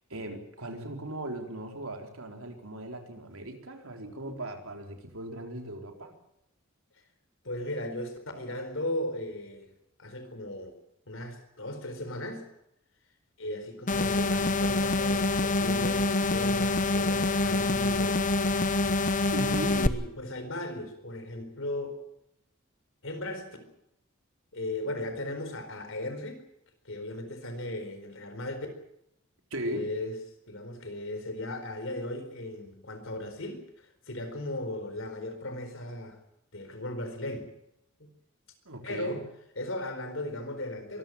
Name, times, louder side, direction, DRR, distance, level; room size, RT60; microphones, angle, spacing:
voice 1, 0.0-6.2 19.3-19.8 29.5-29.9 38.7-39.2, right 1 dB, 80° right, 4 dB, 4.0 m, -38 dB
voice 2, 7.4-9.7 10.0-10.8 11.1-12.4 13.4-18.5 19.7-22.0 23.0-23.5 24.5-26.4 26.8-28.7 29.6-30.2 30.5-36.2 36.5-37.5 38.0-38.1 38.8-39.2 39.6-41.0, left 1 dB, 65° left, 8 dB, 4.4 m, -36 dB
sound 1, 13.9-19.9, left 2 dB, 40° left, 1.0 m, -26 dB
23.5 x 14.5 x 9.2 m, 0.80 s
head